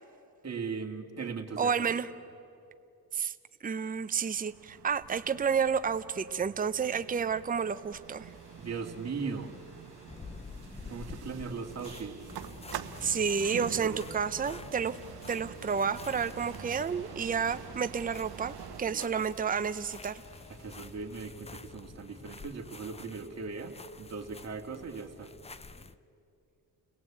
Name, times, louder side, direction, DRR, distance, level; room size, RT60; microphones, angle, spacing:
voice 1, 0.4-2.0 8.6-9.5 10.9-12.2 13.8-14.0 18.9-19.2 20.6-25.3, right 5 dB, 40° right, 2 dB, 2.4 m, -39 dB
voice 2, 1.6-2.1 3.1-3.3 3.6-8.3 13.0-15.0 15.3-20.2, right 6 dB, 20° right, 11 dB, 0.7 m, -30 dB
sound 1, 3.7-18.8, right 9 dB, 75° right, 1.2 m, -46 dB
sound 2, 7.4-21.9, left 1 dB, 55° left, 4.9 m, -61 dB
sound 3, 10.1-26.0, left 4 dB, 15° left, 0.6 m, -49 dB
30.0 x 17.5 x 8.7 m, 2.6 s
cardioid pair, 85°, 38 cm